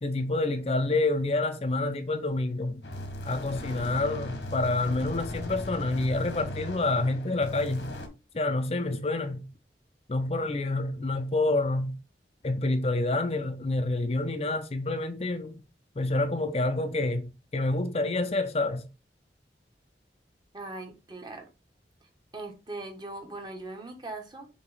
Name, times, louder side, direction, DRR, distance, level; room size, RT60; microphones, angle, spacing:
voice 1, 0.0-2.8 3.3-7.9 8.3-9.5 10.1-12.0 12.4-15.6 16.0-18.9, left 2 dB, 35° left, 0.5 m, -28 dB
sound 1, 2.8-8.1, left 1 dB, 90° left, 1.5 m, -38 dB
voice 2, 20.5-21.5 22.3-24.5, right 2 dB, 25° right, 1.1 m, -40 dB
6.8 x 2.9 x 4.7 m
head